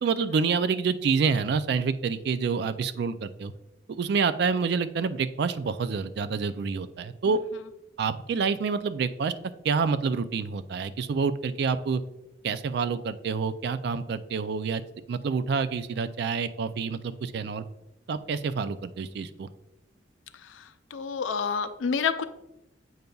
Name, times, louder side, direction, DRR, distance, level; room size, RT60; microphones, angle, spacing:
voice 1, 0.0-3.5 3.9-7.4 8.0-9.3 9.6-12.0 12.4-14.8 15.1-17.6 18.1-19.5, right 5 dB, 60° right, 12 dB, 0.3 m, -27 dB
voice 2, 20.9-22.2, left 6 dB, 90° left, 11 dB, 0.4 m, -28 dB
7.9 x 5.2 x 2.3 m, 0.92 s
head